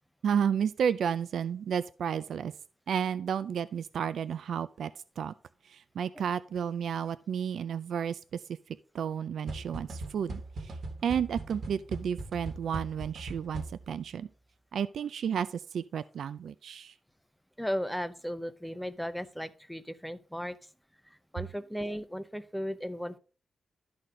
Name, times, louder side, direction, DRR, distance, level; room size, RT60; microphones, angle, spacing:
voice 1, 0.2-2.5 2.9-4.9 5.2-5.3 5.7-8.2 8.9-10.7 11.0-14.3 14.7-16.9, right 8 dB, 75° right, 0.4 m, -32 dB
sound 1, 9.5-14.1, right 2 dB, 50° right, 1.5 m, -40 dB
voice 2, 17.6-20.6 21.1-23.2, equal, ahead, 0.6 m, -36 dB
12.5 x 4.3 x 5.0 m
wide cardioid pair, 165°, 0 cm